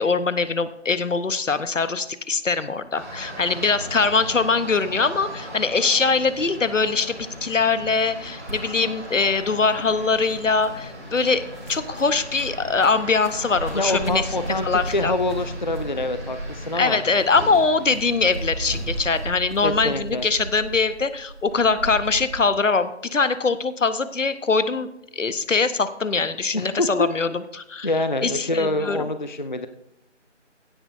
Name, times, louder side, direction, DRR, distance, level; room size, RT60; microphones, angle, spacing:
voice 1, 0.0-11.4 11.7-14.3 14.6-15.1 16.7-27.9 28.2-29.0, left 4 dB, 80° left, 13 dB, 1.0 m, -22 dB
sound 1, 3.0-19.3, equal, 15° right, 2.2 m, -38 dB
sound 2, 8.4-22.5, right 1 dB, 85° right, 3.9 m, -36 dB
voice 2, 13.7-17.0 19.6-20.2 26.5-27.1 27.8-29.7, left 2 dB, 40° left, 10 dB, 0.5 m, -25 dB
16.0 x 9.0 x 2.6 m, 0.82 s
figure-of-eight pair, 165°, 37 cm